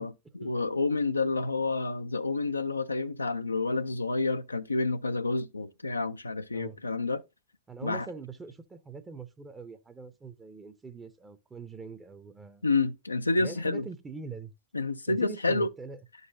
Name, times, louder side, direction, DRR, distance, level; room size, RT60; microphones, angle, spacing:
voice 1, 0.0-7.2 7.8-8.1 12.6-13.8 14.7-15.7, left 3 dB, 80° left, 0.3 m, -29 dB
voice 2, 7.7-12.6 13.4-14.5 15.1-16.0, right 5 dB, 15° right, 0.6 m, -43 dB
11.5 x 4.0 x 2.6 m
figure-of-eight pair, 90°, 0 cm